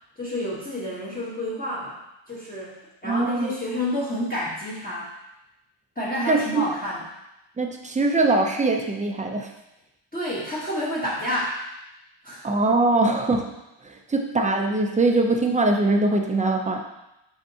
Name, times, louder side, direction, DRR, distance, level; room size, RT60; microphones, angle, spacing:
voice 1, 0.2-2.0 2.3-5.1 5.9-7.0 10.1-11.6 12.2-12.5, left 1 dB, 20° left, -9 dB, 1.2 m, -29 dB
voice 2, 3.0-3.5 6.3-6.7 7.6-9.5 12.4-13.6 13.8-16.8, right 2 dB, 15° right, 3 dB, 0.5 m, -22 dB
6.2 x 5.6 x 2.8 m, 0.91 s
wide cardioid pair, 135°, 50 cm